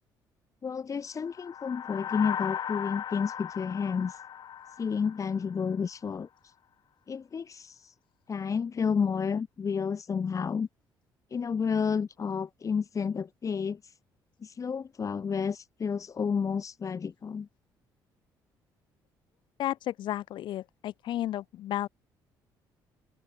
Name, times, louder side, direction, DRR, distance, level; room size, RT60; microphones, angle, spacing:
voice 1, 0.6-4.2 4.8-6.3 7.1-7.9 8.3-10.7 11.3-13.8 14.4-17.5, left 6 dB, 40° left, 2.8 m, -31 dB
sound 1, 1.2-5.8, left 9 dB, 55° left, 2.3 m, -37 dB
voice 2, 19.6-21.9, left 13 dB, 70° left, 4.4 m, -33 dB
supercardioid pair, 80°, 8 cm